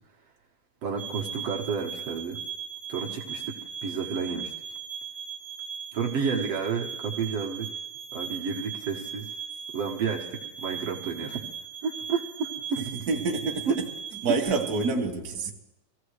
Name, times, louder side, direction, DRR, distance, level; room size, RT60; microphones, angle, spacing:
voice 1, 0.8-2.4 2.9-3.5 3.8-4.5 5.9-7.7 8.1-9.3 9.7-10.3 10.6-11.4 11.8-12.8 13.7-13.8, right 5 dB, 60° right, 0 dB, 2.1 m, -30 dB
sound 1, 1.0-14.9, right 7 dB, 25° left, 1.5 m, -38 dB
voice 2, 12.8-13.8 14.2-15.5, right 3 dB, 40° right, -1 dB, 1.5 m, -28 dB
24.5 x 15.5 x 3.2 m, 0.93 s
omnidirectional pair, 3.5 m